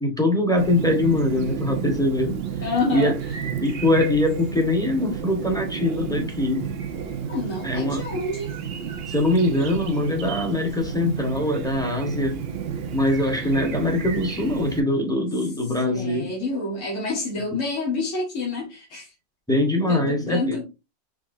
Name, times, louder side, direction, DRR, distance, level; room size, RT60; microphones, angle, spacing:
voice 1, 0.0-2.4 2.9-3.2 3.6-6.7 7.6-8.0 9.1-12.4 12.9-16.3 19.5-20.6, left 1 dB, 5° left, 1.1 m, -22 dB
Chirp tweet, 0.6-14.8, right 7 dB, 55° right, 0.8 m, -32 dB
voice 2, 2.6-3.1 7.3-8.5 15.9-19.1 19.9-20.6, left 3 dB, 65° left, 1.8 m, -28 dB
5.0 x 3.5 x 2.6 m
omnidirectional pair, 1.4 m